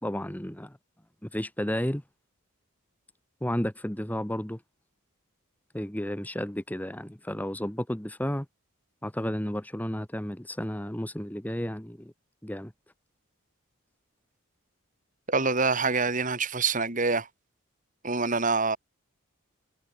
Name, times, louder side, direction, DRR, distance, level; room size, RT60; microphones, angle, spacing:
voice 1, 0.0-0.8 1.2-2.0 3.4-4.6 5.7-8.5 9.0-12.1 12.4-12.7, equal, 10° left, 1.3 m, -32 dB
voice 2, 15.3-17.3 18.0-18.8, right 4 dB, 40° right, 3.2 m, -25 dB
head